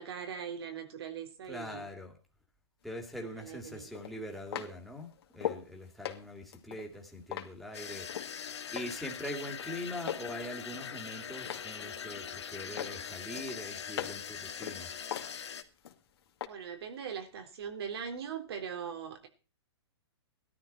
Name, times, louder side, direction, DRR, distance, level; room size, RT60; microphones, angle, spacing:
voice 1, 0.0-1.8 3.4-3.9 16.5-19.3, right 7 dB, 65° right, 3.6 m, -40 dB
voice 2, 1.5-2.2 2.8-14.9, left 1 dB, ahead, 2.9 m, -43 dB
sound 1, 2.9-3.0 3.9-5.7 6.0-8.3 8.7-9.1 9.4-10.3 10.7-11.7 12.1-12.5 12.8-14.3 14.6-16.0 16.4-16.5, left 10 dB, 60° left, 2.4 m, -40 dB
sound 2, 7.7-15.6, left 7 dB, 80° left, 2.2 m, -42 dB
17.5 x 12.5 x 4.4 m
hypercardioid pair, 140°, 14 cm